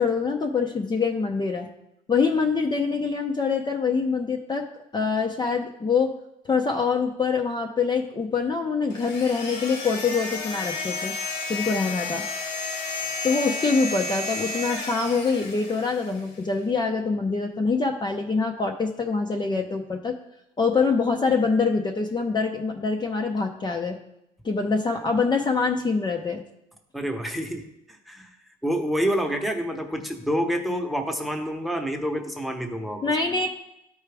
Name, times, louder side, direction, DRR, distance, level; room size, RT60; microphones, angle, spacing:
voice 1, 0.0-1.7 2.1-4.7 4.9-6.1 6.5-11.1 11.5-12.3 13.2-20.2 20.6-24.0 24.4-26.4 33.0-33.5, left 4 dB, 25° left, 2 dB, 0.7 m, -25 dB
sound 1, 8.9-16.3, left 3 dB, 80° left, 1.6 m, -32 dB
voice 2, 26.9-27.6 28.1-28.3 28.6-33.0, equal, ahead, 4 dB, 1.0 m, -27 dB
12.5 x 4.8 x 3.4 m, 0.82 s
cardioid pair, 110°, 17 cm